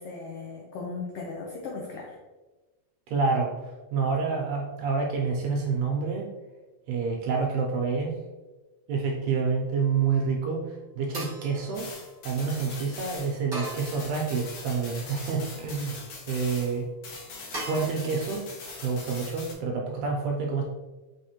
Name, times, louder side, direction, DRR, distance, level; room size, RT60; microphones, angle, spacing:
voice 1, 0.0-2.2, left 4 dB, 85° left, -1 dB, 1.3 m, -37 dB
voice 2, 3.1-3.5 3.9-6.3 6.9-8.1 8.9-11.9 12.3-16.0 16.3-16.9 17.6-18.5 18.8-20.6, right 5 dB, 80° right, 0 dB, 1.6 m, -28 dB
sound 1, 9.8-10.3 11.1-12.5 13.5-14.6 15.1-15.8 17.5-17.8, right 1 dB, 45° right, 0.5 m, -40 dB
sound 2, 11.7-16.8 17.0-19.5, left 3 dB, 70° left, 1.9 m, -42 dB
4.9 x 3.3 x 2.8 m, 1.2 s
omnidirectional pair, 3.4 m